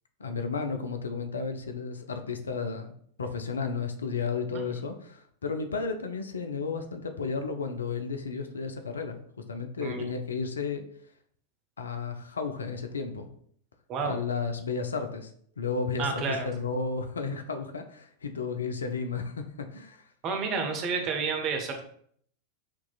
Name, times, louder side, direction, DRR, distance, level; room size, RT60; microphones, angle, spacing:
voice 1, 0.2-2.9 3.2-9.2 9.5-10.8 11.8-13.3 14.0-15.3 15.6-20.0, left 5 dB, 70° left, 6 dB, 0.5 m, -33 dB
voice 2, 9.8-10.1 13.9-14.2 16.0-16.5 20.2-21.8, right 5 dB, 35° right, 5 dB, 0.7 m, -30 dB
6.0 x 2.9 x 2.3 m, 0.62 s
figure-of-eight pair, 90°, 0 cm